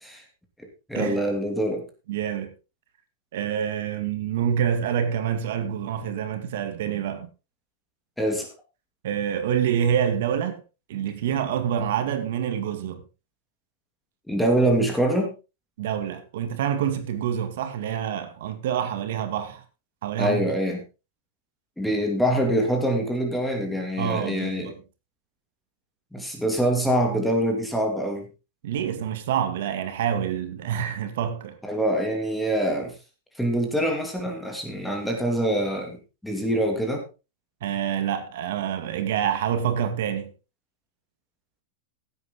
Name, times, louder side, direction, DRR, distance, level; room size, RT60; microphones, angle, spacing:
voice 1, 0.9-1.9 8.2-8.5 14.3-15.4 20.2-20.8 21.8-24.7 26.1-28.3 31.6-32.9 33.4-37.0, right 1 dB, ahead, 2.4 m, -25 dB
voice 2, 2.1-2.5 3.3-7.3 9.0-10.6 10.9-13.0 15.8-19.6 20.0-20.5 24.0-24.8 28.6-31.6 37.6-40.3, right 9 dB, 60° right, 2.2 m, -27 dB
16.5 x 8.7 x 3.8 m
supercardioid pair, 170°, 0 cm